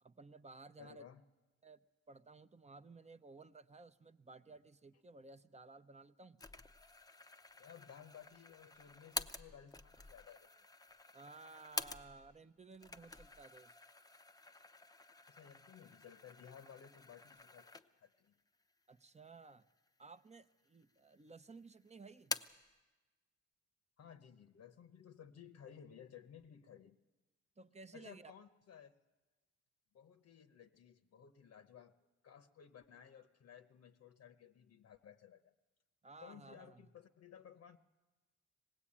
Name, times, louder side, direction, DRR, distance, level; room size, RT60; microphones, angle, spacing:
voice 1, 0.0-1.1 1.6-1.8 2.1-6.4 11.1-13.8 18.9-19.6 20.0-22.3 27.6-28.3 36.0-36.8, right 3 dB, 20° right, 10 dB, 0.8 m, -56 dB
voice 2, 0.8-1.2 4.5-4.6 7.6-10.7 15.3-18.3 24.0-27.0 27.9-28.9 29.9-32.0 32.2-35.5 36.2-37.8, left 8 dB, 55° left, 9 dB, 0.9 m, -57 dB
sound 1, 6.4-12.4 12.7-18.2 18.6-18.7 19.5-20.2 20.5-21.3 21.6-22.7, left 3 dB, 10° left, 0.7 m, -48 dB
20.0 x 17.5 x 8.6 m, 1.2 s
cardioid pair, 90°, 30 cm